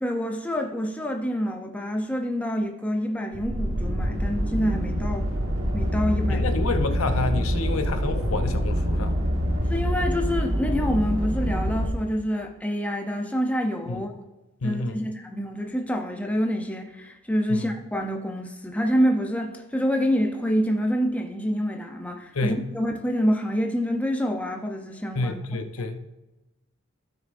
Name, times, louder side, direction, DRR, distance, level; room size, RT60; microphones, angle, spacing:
voice 1, 0.0-5.3 5.7-6.5 9.7-14.1 14.6-25.4, equal, 5° left, 0.7 m, -27 dB
sound 1, 3.3-11.9, equal, 65° right, 1.4 m, -25 dB
voice 2, 6.3-9.1 13.9-14.0 14.6-15.0 17.5-17.7 22.3-22.6 25.1-26.0, left 3 dB, 70° left, 0.8 m, -29 dB
15.5 x 6.3 x 2.6 m
head